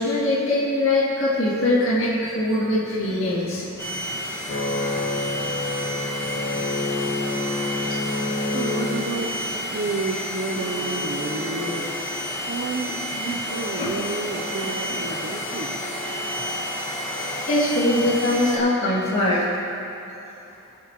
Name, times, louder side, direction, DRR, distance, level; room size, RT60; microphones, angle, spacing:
voice 1, 0.0-3.6 12.9-13.0 13.3-13.4 13.8-13.9 17.1-19.6, left 1 dB, 65° left, -9 dB, 2.3 m, -22 dB
sound 1, 1.8-17.9, left 2 dB, 45° left, 1.5 m, -32 dB
sound 2, 3.8-18.6, equal, 10° left, 1.1 m, -31 dB
voice 2, 8.5-11.9 12.5-15.8, right 3 dB, 50° right, 5 dB, 0.6 m, -31 dB
20.5 x 7.0 x 3.0 m, 2.9 s
head